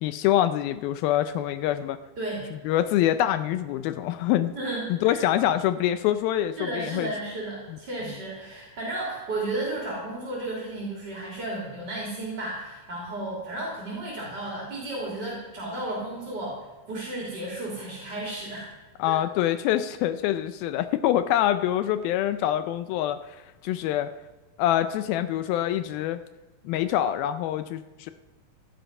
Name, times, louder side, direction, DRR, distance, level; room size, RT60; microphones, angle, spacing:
voice 1, 0.0-2.0 2.6-4.5 5.0-7.1 7.7-7.8 19.0-24.1 24.6-26.2 26.7-28.1, left 12 dB, 80° left, 11 dB, 2.3 m, -25 dB
voice 2, 2.2-2.5 4.5-5.2 6.6-18.7 19.1-19.2, right 2 dB, 30° right, -3 dB, 3.1 m, -33 dB
16.0 x 12.5 x 5.4 m, 1.2 s
omnidirectional pair, 4.5 m